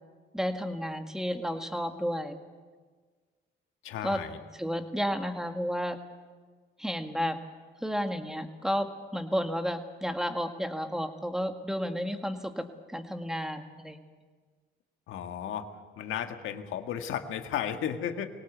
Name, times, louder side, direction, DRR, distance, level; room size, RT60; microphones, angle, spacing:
voice 1, 0.3-2.4 4.0-4.2 4.5-6.0 6.8-7.4 7.8-14.0, equal, ahead, 6 dB, 1.9 m, -32 dB
voice 2, 3.8-4.4 15.1-15.7 16.0-18.3, left 9 dB, 85° left, 6 dB, 1.7 m, -34 dB
23.0 x 18.0 x 8.2 m, 1.5 s
cardioid pair, 90°, 20 cm